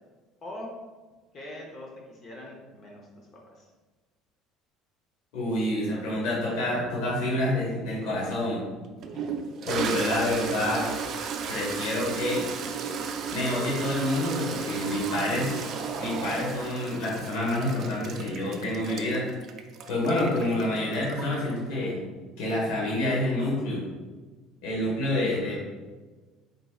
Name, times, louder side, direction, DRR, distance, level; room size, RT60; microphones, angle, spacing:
voice 1, 1.3-3.7 9.1-9.5, left 1 dB, 35° left, -2 dB, 0.8 m, -43 dB
voice 2, 5.3-8.7 9.7-10.9 11.5-12.4 13.3-15.7 16.0-19.3 19.9-22.0 22.4-23.8 24.6-25.5, left 1 dB, 80° left, -4 dB, 1.4 m, -28 dB
Toilet flush, 8.3-8.4 9.0-21.5, right 6 dB, 45° right, 0.4 m, -34 dB
4.5 x 3.9 x 2.3 m, 1.3 s
cardioid pair, 145°, 0 cm